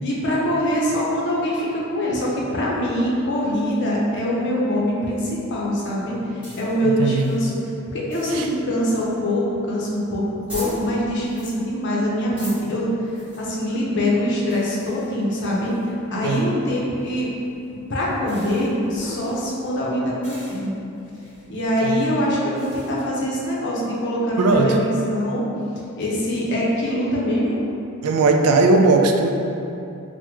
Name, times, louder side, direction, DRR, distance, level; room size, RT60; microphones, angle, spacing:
voice 1, 0.0-7.6 7.9-10.2 10.5-12.9 13.4-17.3 17.9-20.7 21.5-25.4 26.0-27.6, equal, 55° left, -5 dB, 0.6 m, -23 dB
sound 1, 6.0-22.9, equal, 5° right, 1.3 m, -43 dB
voice 2, 6.8-7.3 8.3-8.5 16.2-16.5 21.8-22.2 24.4-24.8 28.0-29.3, right 3 dB, 85° right, 8 dB, 0.3 m, -18 dB
2.9 x 2.1 x 3.4 m, 2.8 s
head